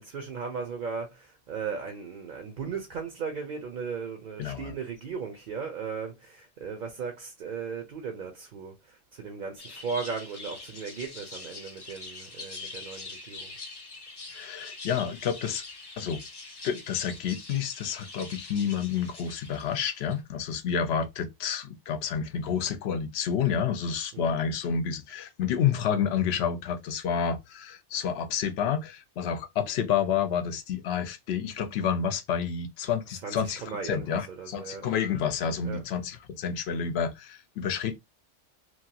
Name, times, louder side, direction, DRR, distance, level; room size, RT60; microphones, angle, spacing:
voice 1, 0.0-13.5 24.1-24.3 33.2-35.0 35.6-35.8, right 5 dB, 50° right, 0.7 m, -37 dB
voice 2, 4.4-4.7 14.3-15.6 16.0-16.2 16.6-38.0, left 7 dB, 70° left, 0.8 m, -29 dB
sound 1, 9.6-20.2, left 3 dB, 35° left, 0.4 m, -44 dB
3.1 x 2.4 x 2.7 m
omnidirectional pair, 1.2 m